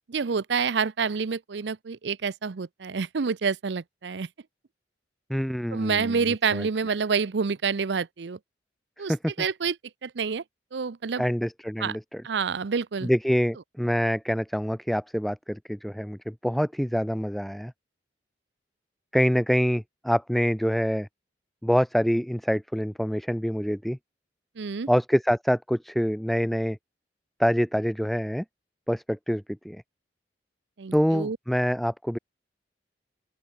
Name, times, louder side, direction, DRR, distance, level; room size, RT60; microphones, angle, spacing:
voice 1, 0.1-4.3 5.7-8.4 9.0-9.8 10.0-10.4 10.7-11.2 11.8-12.0 12.2-13.1 24.6-24.9 30.8-31.4, right 5 dB, 70° right, 0.6 m, -28 dB
voice 2, 5.3-6.2 6.5-6.7 9.1-9.3 11.2-12.2 13.0-17.7 19.1-21.1 21.6-24.0 24.9-26.8 27.4-28.4 28.9-29.8 30.9-32.2, equal, ahead, 0.7 m, -26 dB
open air
head